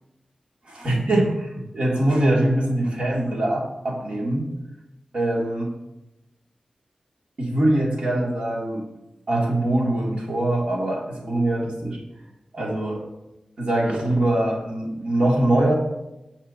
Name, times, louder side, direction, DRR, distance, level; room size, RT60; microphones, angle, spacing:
voice 1, 0.7-4.5 5.1-5.7 7.4-8.8 9.3-12.0 12.5-13.0 13.6-15.7, right 1 dB, 65° right, -2 dB, 2.4 m, -23 dB
13.5 x 7.3 x 2.8 m, 0.94 s
wide cardioid pair, 115°, 2 cm